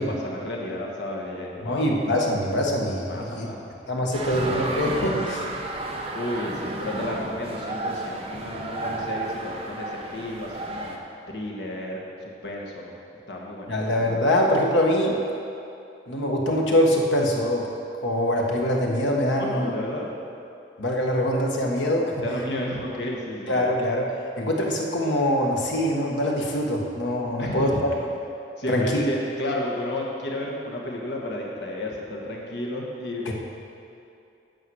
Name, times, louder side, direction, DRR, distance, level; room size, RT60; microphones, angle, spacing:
voice 1, 0.0-1.9 3.1-3.7 6.1-11.0 11.3-12.9 13.3-14.0 19.4-20.1 22.2-23.7 27.4-27.9 28.6-33.3, left 1 dB, 70° left, -2 dB, 1.5 m, -32 dB
voice 2, 1.6-3.5 3.9-5.5 13.7-15.2 16.1-17.7 18.0-19.8 20.8-22.1 23.5-24.1 24.4-27.9 28.7-29.0 33.3-33.4, left 1 dB, 85° left, -1 dB, 1.4 m, -23 dB
sound 1, 4.1-11.0, right 2 dB, 30° right, 0.8 m, -32 dB
9.0 x 6.9 x 6.3 m, 2.6 s
head